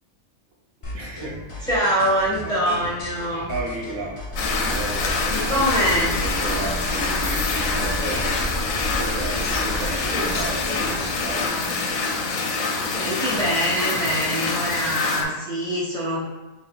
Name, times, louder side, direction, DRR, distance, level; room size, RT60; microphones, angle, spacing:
sound 1, 0.8-11.5, left 1 dB, 30° left, 0.6 m, -35 dB
voice 1, 0.9-1.7 2.4-2.5 3.5-4.1 4.5-5.1 5.5-5.7 5.9-8.4 8.8-11.5, right 2 dB, 80° right, -2 dB, 1.2 m, -33 dB
voice 2, 1.6-3.5 5.5-6.2 10.1-10.3 12.9-16.3, equal, 5° left, -8 dB, 1.4 m, -24 dB
sound 2, 4.3-11.9, equal, 55° right, 0.9 m, -32 dB
sound 3, 4.4-15.2, left 4 dB, 75° left, 1.0 m, -26 dB
5.6 x 3.3 x 2.4 m, 1.1 s
omnidirectional pair, 1.5 m